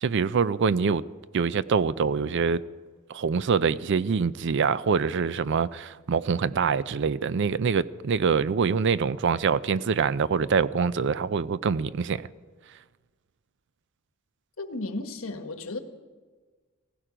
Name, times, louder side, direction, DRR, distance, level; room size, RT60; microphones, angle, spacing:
voice 1, 0.0-1.0 1.3-2.6 3.1-12.2, right 5 dB, 60° right, 0.4 m, -25 dB
voice 2, 14.6-15.8, left 2 dB, 90° left, 1.3 m, -34 dB
17.5 x 15.5 x 5.0 m
head